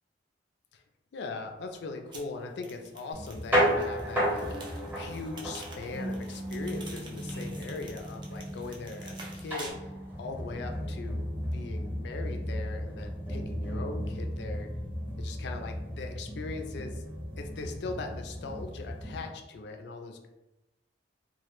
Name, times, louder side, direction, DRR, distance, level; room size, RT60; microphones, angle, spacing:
voice 1, 1.1-11.3 11.5-14.7 15.2-17.0 17.4-20.3, left 3 dB, 60° left, 5 dB, 0.3 m, -40 dB
sound 1, 2.1-9.7, right 2 dB, 25° right, 0.3 m, -49 dB
sound 2, 3.1-19.3, equal, 10° right, 0.7 m, -34 dB
2.1 x 2.0 x 2.9 m, 0.98 s
head